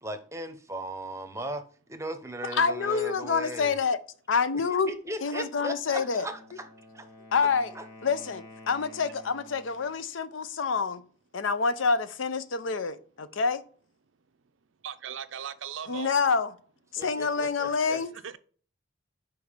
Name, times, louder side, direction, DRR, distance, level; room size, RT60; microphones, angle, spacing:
voice 1, 0.0-1.6 1.9-3.8 4.5-6.7 6.9-7.1 7.7-7.9 17.0-18.0, right 1 dB, 15° right, 0.7 m, -37 dB
voice 2, 2.5-4.0 4.3-4.9 5.2-6.3 7.3-7.7 8.0-11.0 11.3-13.6 15.9-16.5 16.9-18.1, left 5 dB, 85° left, 0.6 m, -27 dB
Wind instrument woodwind instrument, 6.1-9.9, left 2 dB, 35° left, 2.8 m, -50 dB
voice 3, 14.8-16.1 18.2-18.4, right 8 dB, 85° right, 0.5 m, -38 dB
5.4 x 4.5 x 4.9 m
head